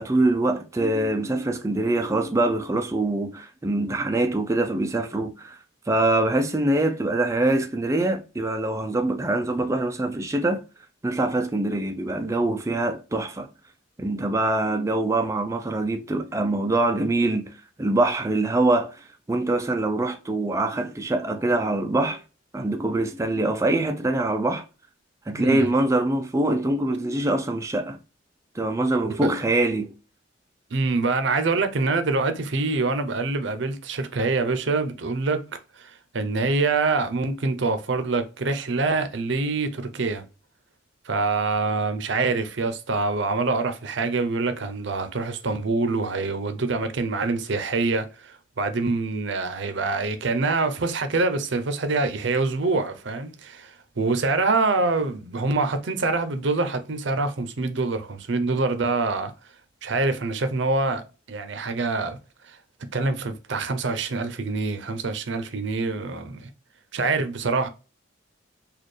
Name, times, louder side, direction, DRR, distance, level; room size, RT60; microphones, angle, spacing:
voice 1, 0.0-5.6 5.9-10.6 11.0-13.5 14.0-22.2 22.5-24.6 25.3-28.0 28.5-29.9, right 2 dB, 15° right, 0.3 m, -24 dB
voice 2, 25.3-25.7 29.2-29.3 30.7-35.5 35.8-40.2 41.0-59.3 59.8-62.2 62.4-62.6 62.9-66.5 66.9-67.7, right 3 dB, 60° right, 0.6 m, -25 dB
4.2 x 2.3 x 3.2 m
head